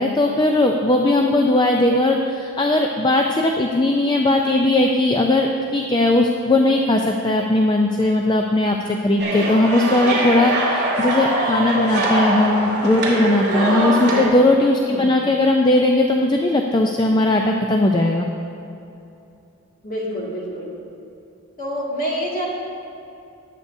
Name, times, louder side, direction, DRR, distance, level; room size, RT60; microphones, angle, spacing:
voice 1, 0.0-18.3, left 2 dB, 20° left, 2 dB, 0.4 m, -18 dB
sound 1, 9.2-14.3, right 1 dB, 45° right, 2.5 m, -22 dB
voice 2, 13.8-14.2 14.7-15.1 19.8-20.7 21.6-22.5, equal, 40° left, -5 dB, 2.1 m, -27 dB
19.0 x 8.2 x 2.7 m, 2.7 s
head